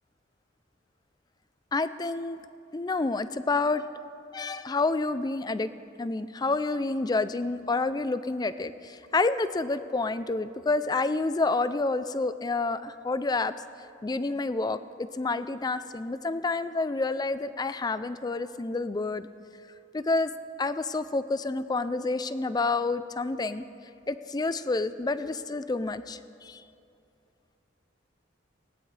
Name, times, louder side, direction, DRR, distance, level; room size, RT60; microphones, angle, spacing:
voice 1, 1.7-2.4 2.7-4.0 4.3-5.7 6.0-13.5 14.0-19.3 19.9-20.3 20.6-23.6 24.1-26.6, left 3 dB, 20° left, 13 dB, 0.4 m, -29 dB
19.5 x 17.5 x 3.3 m, 2.6 s
head